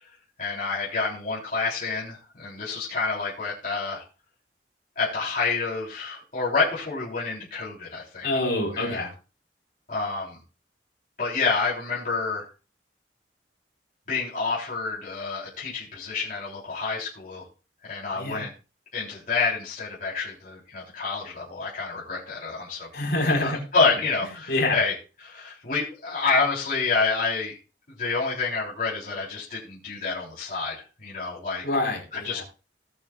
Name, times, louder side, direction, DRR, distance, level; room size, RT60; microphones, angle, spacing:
voice 1, 0.4-4.0 5.0-8.3 8.7-9.0 9.9-10.4 11.2-12.5 14.1-17.4 17.8-18.5 18.9-22.9 23.3-24.9 25.2-27.5 28.0-30.7 31.0-31.6 32.1-32.4, left 4 dB, 45° left, -7 dB, 3.8 m, -28 dB
voice 2, 8.2-9.1 18.1-18.5 22.9-23.6 24.5-24.8 31.6-32.4, left 2 dB, 60° left, -1 dB, 4.7 m, -26 dB
19.0 x 7.5 x 2.5 m, 0.33 s
head